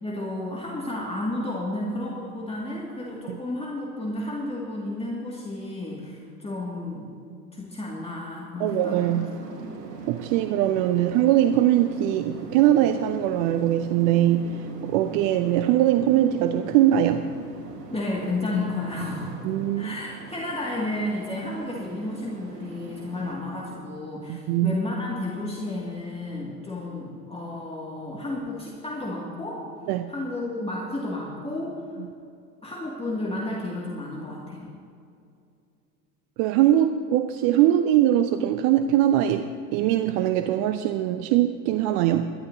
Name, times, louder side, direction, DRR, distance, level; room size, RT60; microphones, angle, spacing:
voice 1, 0.0-7.1 7.5-9.6 17.9-19.5 19.8-29.7 30.1-31.8 32.6-34.7, left 2 dB, 10° left, -4 dB, 2.2 m, -32 dB
voice 2, 8.6-9.3 10.1-17.3 19.4-20.0 24.3-24.8 29.9-30.1 36.4-42.3, right 12 dB, 45° right, 9 dB, 0.6 m, -22 dB
sound 1, 8.7-23.3, right 4 dB, 75° right, 1.7 m, -41 dB
21.5 x 13.0 x 2.8 m, 2.4 s
figure-of-eight pair, 80°, 49 cm